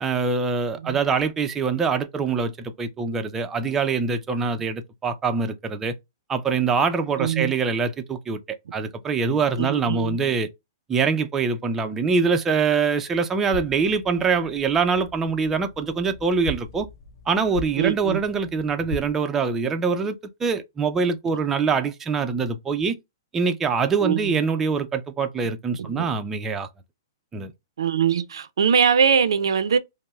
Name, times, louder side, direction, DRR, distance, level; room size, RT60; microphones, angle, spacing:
voice 1, 0.0-5.9 6.3-8.4 8.7-10.5 10.9-16.9 17.3-23.0 23.3-26.7 27.3-27.5, right 5 dB, 15° right, 0.4 m, -24 dB
voice 2, 7.2-7.5 9.6-10.2 17.8-18.2 24.0-24.3 26.0-26.1 27.8-29.8, right 7 dB, 80° right, 0.5 m, -22 dB
sound 1, 13.5-19.1, left 3 dB, 65° left, 0.7 m, -39 dB
5.2 x 2.0 x 2.3 m
hypercardioid pair, 145°, 2 cm